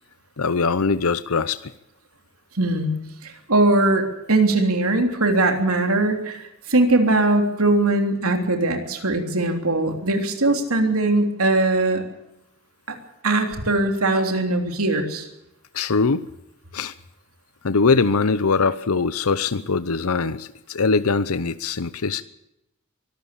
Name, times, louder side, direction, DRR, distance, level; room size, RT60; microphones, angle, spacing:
voice 1, 0.4-1.7 15.7-16.2 16.7-16.9 17.6-22.2, left 4 dB, 90° left, 14 dB, 0.8 m, -22 dB
voice 2, 2.5-2.9 3.2-12.0 12.9-13.0 13.2-15.3, right 2 dB, 85° right, 4 dB, 3.4 m, -20 dB
24.0 x 13.0 x 8.5 m, 0.86 s
head